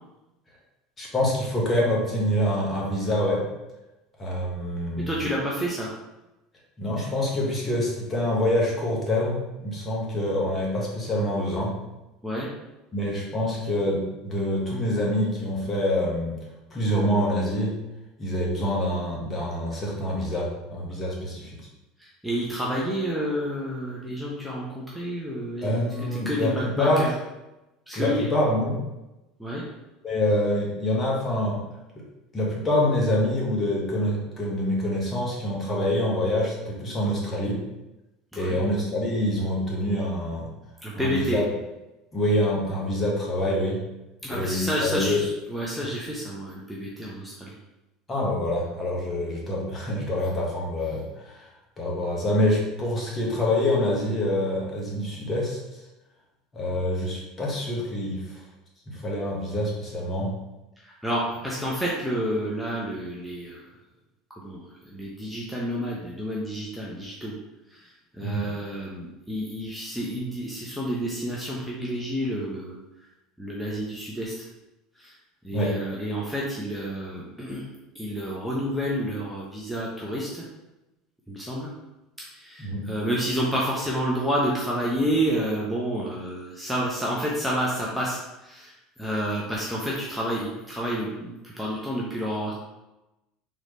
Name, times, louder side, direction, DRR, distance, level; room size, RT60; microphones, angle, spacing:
voice 1, 1.0-3.4 4.2-5.2 6.8-11.7 12.9-16.4 16.7-17.7 18.2-21.6 25.6-27.0 27.9-28.8 30.0-31.6 31.9-32.0 32.3-37.6 38.3-40.5 40.9-41.4 42.1-43.8 44.3-45.3 48.1-51.5 51.8-55.8 56.5-58.4 58.9-60.3 68.2-68.5 75.5-75.8 82.6-82.8, left 1 dB, 25° left, -3 dB, 1.5 m, -26 dB
voice 2, 4.9-5.9 12.2-12.5 22.0-27.2 27.9-28.3 29.4-29.6 38.3-38.6 40.8-41.4 44.2-47.5 60.8-63.6 64.3-67.4 67.7-72.7 73.4-74.3 75.0-75.1 75.4-77.6 77.9-80.4 81.3-81.7 82.3-92.5, equal, ahead, -5 dB, 0.9 m, -29 dB
4.0 x 3.2 x 3.2 m, 0.98 s
hypercardioid pair, 90°, 0 cm